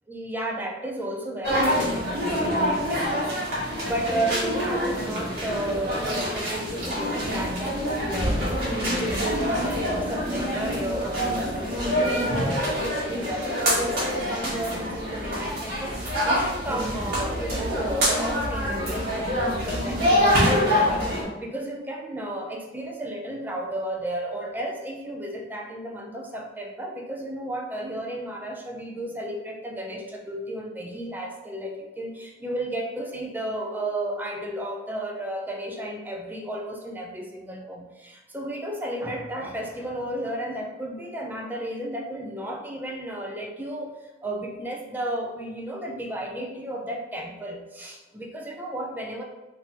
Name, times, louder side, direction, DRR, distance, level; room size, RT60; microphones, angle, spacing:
voice 1, 0.1-8.4 9.1-43.9 44.2-49.2, right 1 dB, 10° right, 0 dB, 0.5 m, -33 dB
sound 1, 1.4-21.2, equal, 60° right, 1.3 m, -26 dB
3.7 x 2.7 x 2.8 m, 1.1 s
head